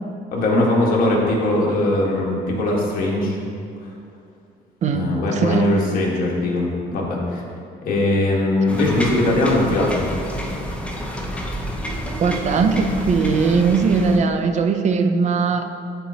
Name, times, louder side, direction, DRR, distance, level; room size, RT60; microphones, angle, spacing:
voice 1, 0.3-3.4 4.9-7.4 7.8-10.1, left 1 dB, 55° left, -3 dB, 1.5 m, -20 dB
voice 2, 4.8-5.7 12.2-15.7, right 5 dB, 45° right, 6 dB, 0.5 m, -19 dB
sound 1, 8.7-14.2, equal, 5° left, 0.8 m, -29 dB
10.5 x 4.2 x 2.8 m, 2.4 s
cardioid pair, 110°, 17 cm